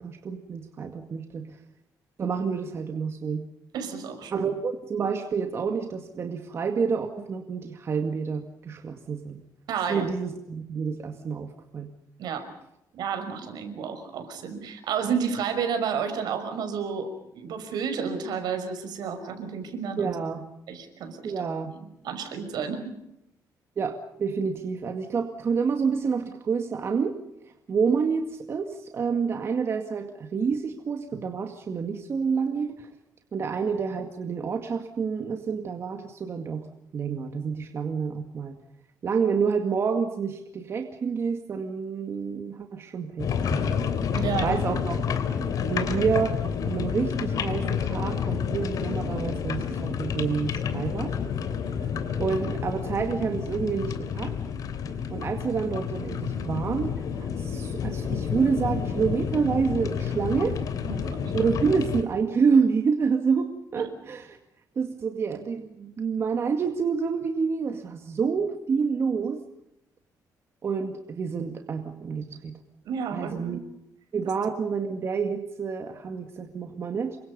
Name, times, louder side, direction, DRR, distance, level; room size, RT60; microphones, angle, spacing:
voice 1, 0.0-1.6 2.2-3.5 4.3-9.4 9.9-11.9 20.0-20.4 21.2-21.8 23.8-27.2 27.7-32.9 33.3-36.7 36.9-38.6 39.0-43.8 44.4-45.0 45.7-46.4 46.6-51.2 51.8-51.9 52.2-54.4 55.1-60.6 61.3-64.4 64.8-69.4 70.6-72.5 73.1-73.6 74.1-77.2, right 5 dB, 35° right, 5 dB, 2.1 m, -28 dB
voice 2, 3.7-4.4 9.7-10.1 12.2-12.4 12.9-20.1 20.7-21.5 22.0-22.9 44.1-44.6 60.8-61.2 63.8-63.9 72.8-73.6, right 6 dB, 75° right, 7 dB, 5.9 m, -31 dB
sound 1, 43.2-62.0, left 7 dB, 55° left, 3.2 m, -29 dB
28.5 x 24.5 x 5.5 m, 0.83 s
cardioid pair, 155°, 7 cm